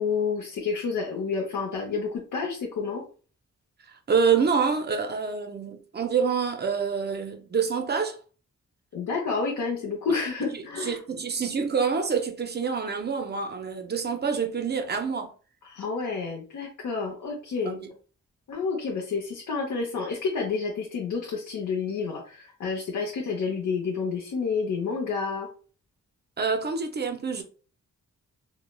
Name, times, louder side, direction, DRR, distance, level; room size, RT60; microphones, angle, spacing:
voice 1, 0.0-3.0 8.9-11.0 15.6-17.8 18.5-25.5, left 5 dB, 75° left, 0.7 m, -29 dB
voice 2, 3.9-8.2 10.8-15.3 17.6-17.9 26.4-27.4, right 6 dB, 35° right, 0.4 m, -27 dB
3.1 x 2.1 x 2.2 m
wide cardioid pair, 110°, 31 cm